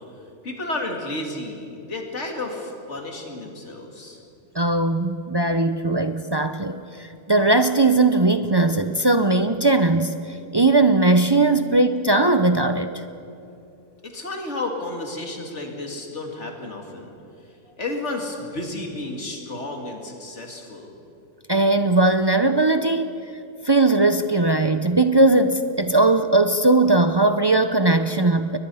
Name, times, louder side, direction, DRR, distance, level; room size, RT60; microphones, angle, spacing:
voice 1, 0.4-4.2 14.0-17.2 17.8-20.9, left 2 dB, 55° left, 2 dB, 2.8 m, -32 dB
voice 2, 4.5-12.9 21.5-23.2 23.6-28.6, right 2 dB, 35° right, 9 dB, 0.4 m, -19 dB
23.0 x 20.0 x 5.6 m, 2.7 s
omnidirectional pair, 1.4 m